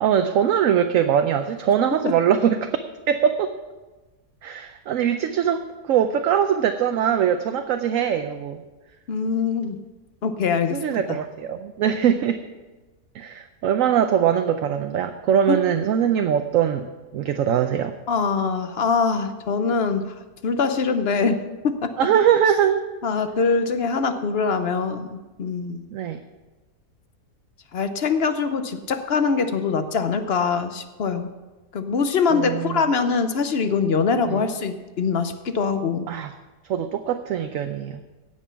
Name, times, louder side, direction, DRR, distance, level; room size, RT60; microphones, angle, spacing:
voice 1, 0.0-2.8 3.1-3.5 4.4-8.6 10.7-12.4 13.1-17.9 22.0-22.9 25.9-26.2 32.3-32.8 34.2-34.4 36.1-36.3 36.7-38.0, right 9 dB, 65° right, 7 dB, 0.9 m, -22 dB
voice 2, 9.1-9.8 10.2-10.8 11.1-11.2 15.5-15.6 18.1-20.1 20.4-21.4 21.6-21.9 23.0-25.1 25.4-25.9 27.7-31.3 31.7-36.1, left 5 dB, 50° left, 9 dB, 0.8 m, -23 dB
16.5 x 6.2 x 5.7 m, 1.2 s
omnidirectional pair, 1.7 m